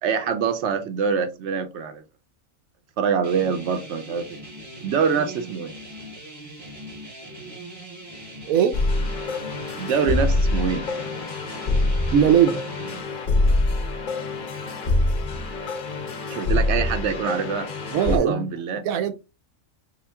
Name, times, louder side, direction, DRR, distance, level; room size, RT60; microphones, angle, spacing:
voice 1, 0.0-2.0 3.0-4.3 4.8-5.7 9.8-10.9 16.3-17.7 18.2-18.8, right 6 dB, 65° right, 0.8 m, -24 dB
sound 1, 3.2-13.0, right 1 dB, 20° right, 0.5 m, -41 dB
voice 2, 8.5-8.8 12.1-12.6 17.9-18.5 18.8-19.1, right 8 dB, 85° right, 1.0 m, -19 dB
sound 2, 8.7-18.2, left 2 dB, 55° left, 0.6 m, -25 dB
3.6 x 2.4 x 3.3 m
omnidirectional pair, 1.4 m